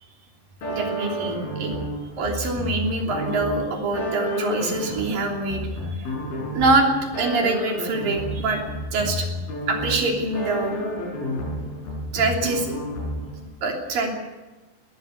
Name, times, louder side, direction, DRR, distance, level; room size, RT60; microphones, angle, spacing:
sound 1, 0.6-13.5, equal, 85° left, 7.7 m, -30 dB
voice 1, 0.7-1.7 2.2-5.6 6.0-6.1 6.5-6.9 7.2-8.6 8.9-9.3 9.7-10.8 12.1-12.7 13.6-14.1, right 3 dB, 65° right, 1 dB, 4.9 m, -24 dB
20.0 x 14.0 x 9.5 m, 1.2 s
omnidirectional pair, 4.3 m